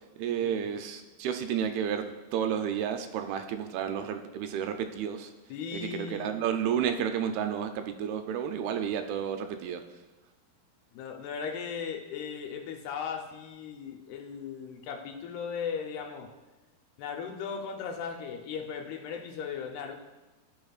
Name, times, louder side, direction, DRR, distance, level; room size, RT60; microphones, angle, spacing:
voice 1, 0.2-5.3 5.7-9.8, right 8 dB, 80° right, 6 dB, 2.4 m, -31 dB
voice 2, 5.5-6.4 10.9-16.3 17.0-19.9, left 6 dB, 85° left, 3 dB, 2.8 m, -37 dB
15.5 x 6.0 x 2.4 m, 1.1 s
omnidirectional pair, 4.5 m